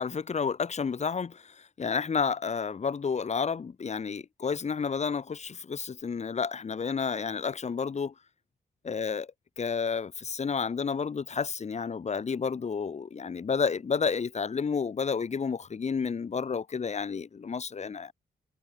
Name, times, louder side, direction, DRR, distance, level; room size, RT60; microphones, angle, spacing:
voice 1, 0.0-8.1 8.8-9.3 9.6-18.1, left 5 dB, 40° left, 2.4 m, -31 dB
wide cardioid pair, 150°, 17 cm